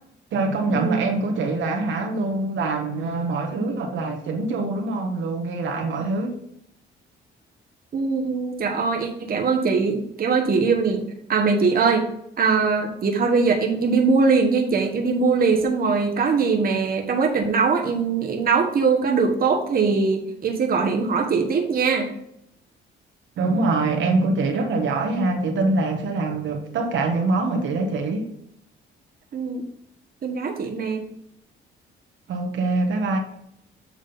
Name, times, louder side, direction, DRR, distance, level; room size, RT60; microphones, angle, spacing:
voice 1, 0.3-6.4 23.4-28.3 32.3-33.2, right 3 dB, 70° right, 1.2 m, -24 dB
voice 2, 7.9-12.1 12.4-22.1 29.3-29.6 30.2-31.0, right 4 dB, 50° right, 1.1 m, -21 dB
7.5 x 3.6 x 5.2 m
cardioid pair, 90°, 20 cm